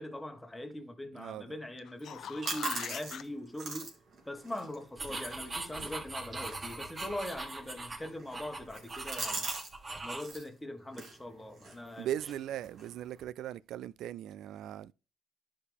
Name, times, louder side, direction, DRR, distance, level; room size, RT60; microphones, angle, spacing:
voice 1, 0.0-3.9 4.2-9.5 10.0-12.1, left 1 dB, 10° left, 1.7 m, -42 dB
voice 2, 1.1-1.5 12.0-14.9, right 11 dB, 80° right, 0.3 m, -39 dB
sound 1, 1.8-3.2 8.0-8.1, left 9 dB, 70° left, 0.6 m, -43 dB
sound 2, 2.0-9.7 10.0-10.5 10.9-13.2, right 3 dB, 55° right, 3.1 m, -43 dB
sound 3, 5.0-10.3, right 2 dB, 40° right, 3.6 m, -41 dB
11.5 x 5.0 x 3.6 m
cardioid pair, 90°, 0 cm